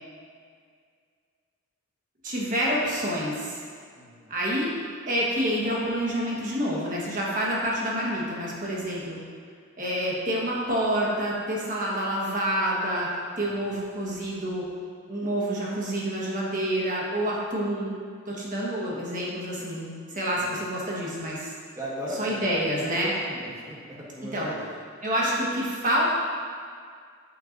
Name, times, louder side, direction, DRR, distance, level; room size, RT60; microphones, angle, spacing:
voice 1, 2.2-3.6 4.3-4.7 5.1-9.2 9.8-14.7 15.1-18.0 18.3-21.5 22.2-23.1 24.3-24.5 25.0-26.1, equal, 35° right, -5 dB, 1.4 m, -28 dB
voice 2, 3.9-4.3 20.2-20.7 21.7-22.5 22.8-24.6, equal, 15° right, -6 dB, 1.1 m, -38 dB
8.3 x 7.7 x 2.6 m, 2.1 s
head